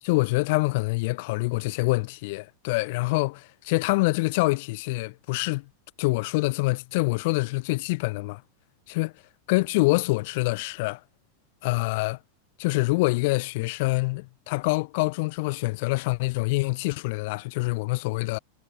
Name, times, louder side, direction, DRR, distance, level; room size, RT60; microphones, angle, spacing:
voice 1, 0.0-5.6 6.0-8.4 8.9-9.1 9.5-11.0 11.6-12.2 12.6-18.4, left 24 dB, 50° left, 2.9 m, -25 dB
figure-of-eight pair, 90°, 0 cm